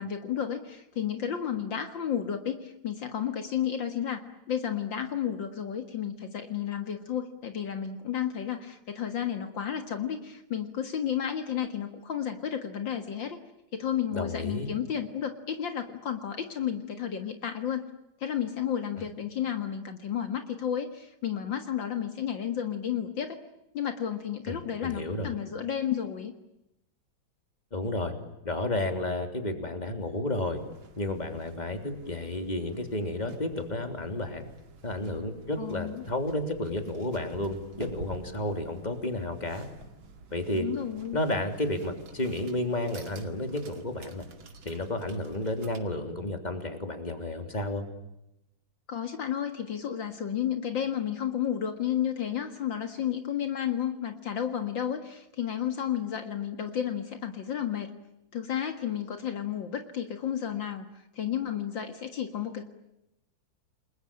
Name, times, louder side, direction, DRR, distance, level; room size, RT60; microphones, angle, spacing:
voice 1, 0.0-4.2 4.5-13.4 13.7-17.9 18.2-23.4 23.7-26.3 35.6-36.0 40.5-41.2 48.9-57.9 58.3-60.9 61.2-62.6, left 9 dB, 70° left, 7 dB, 2.4 m, -32 dB
voice 2, 14.1-14.7 24.5-25.4 27.7-28.1 28.4-30.6 31.0-34.4 34.8-39.7 40.3-40.7 41.1-44.2 44.6-47.9, left 1 dB, 20° left, 6 dB, 3.4 m, -32 dB
sound 1, 30.5-45.8, right 4 dB, 75° right, 3.1 m, -50 dB
29.5 x 21.0 x 8.7 m, 0.87 s
omnidirectional pair, 2.2 m